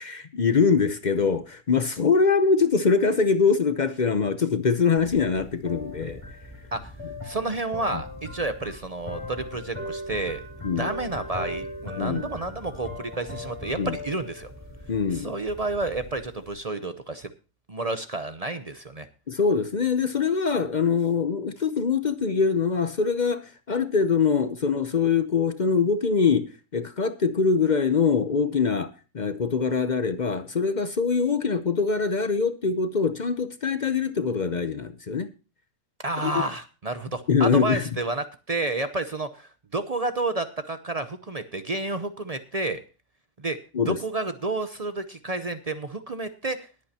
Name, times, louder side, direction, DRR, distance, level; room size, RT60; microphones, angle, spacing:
voice 1, 0.0-6.2 7.9-8.0 10.6-10.9 12.0-12.3 13.8-14.0 14.9-15.3 19.3-26.5 26.7-35.3 36.2-36.4 37.3-37.8 43.7-44.0, left 5 dB, 50° left, 0.5 m, -23 dB
sound 1, 5.0-16.6, left 1 dB, 20° left, 2.9 m, -39 dB
voice 2, 7.2-10.4 10.8-14.5 15.1-17.3 17.7-19.1 36.0-42.8 43.4-43.6 43.9-46.7, right 2 dB, 50° right, 0.4 m, -30 dB
21.0 x 8.6 x 2.8 m
omnidirectional pair, 1.8 m